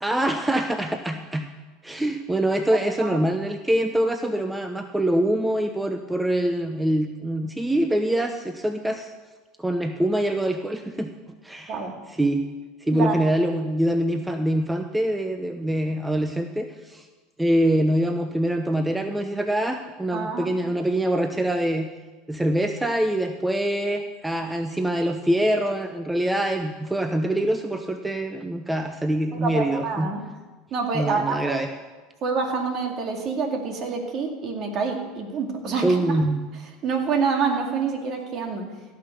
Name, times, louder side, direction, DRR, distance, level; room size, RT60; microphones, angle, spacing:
voice 1, 0.0-1.5 1.8-9.1 9.6-11.1 11.4-11.8 12.1-12.4 12.8-17.1 17.4-21.9 22.3-30.1 30.9-31.7 35.8-36.4, right 1 dB, 10° right, 7 dB, 0.7 m, -24 dB
voice 2, 20.1-20.5 29.4-30.2 30.7-31.7 32.2-35.9 36.8-38.7, right 5 dB, 50° right, 3 dB, 2.3 m, -27 dB
16.0 x 5.9 x 6.7 m, 1.3 s
hypercardioid pair, 85°, 0 cm